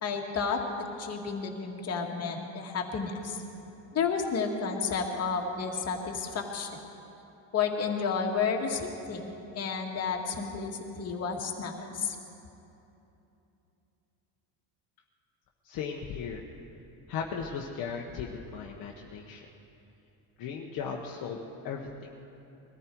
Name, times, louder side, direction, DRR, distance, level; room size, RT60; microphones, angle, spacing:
voice 1, 0.0-3.4 3.9-6.7 7.5-12.2, left 5 dB, 35° left, 1 dB, 1.9 m, -31 dB
voice 2, 15.6-16.5 17.1-19.5 20.4-21.4 21.6-21.9, left 6 dB, 50° left, -1 dB, 1.2 m, -36 dB
21.5 x 14.0 x 4.6 m, 2.9 s
cardioid pair, 130°, 46 cm